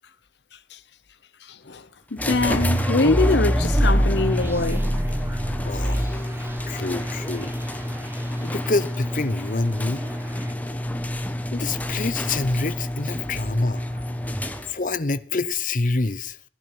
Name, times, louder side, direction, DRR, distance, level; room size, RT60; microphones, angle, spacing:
voice 1, 2.1-4.9, left 3 dB, 85° left, 1.0 m, -23 dB
sound 1, 2.2-15.0, left 1 dB, 10° left, 1.3 m, -29 dB
sound 2, 2.5-8.4 9.7-10.5, equal, 15° right, 1.1 m, -25 dB
voice 2, 5.6-6.3 6.7-7.5 8.4-10.0 11.5-13.9 14.7-16.4, left 3 dB, 50° left, 0.8 m, -26 dB
15.5 x 11.0 x 5.9 m
head